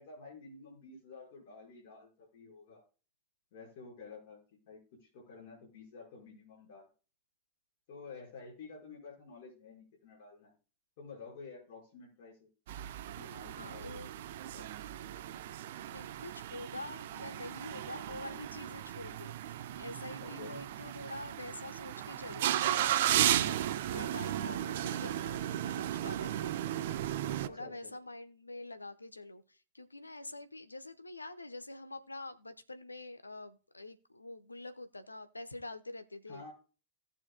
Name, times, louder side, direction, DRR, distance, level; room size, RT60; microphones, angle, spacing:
voice 1, 0.0-2.8 3.5-4.4 4.7-6.9 7.9-10.5 11.0-12.4 13.2-14.0 14.4-14.7 20.2-20.6 27.4-27.9 36.3-36.5, left 4 dB, 50° left, -3 dB, 5.2 m, -50 dB
sound 1, 12.7-27.5, right 12 dB, 55° right, 0.5 m, -35 dB
voice 2, 13.6-14.1 15.9-26.5 27.2-36.4, left 2 dB, 80° left, 11 dB, 1.0 m, -46 dB
17.5 x 6.9 x 2.2 m, 0.35 s
figure-of-eight pair, 90°, 0 cm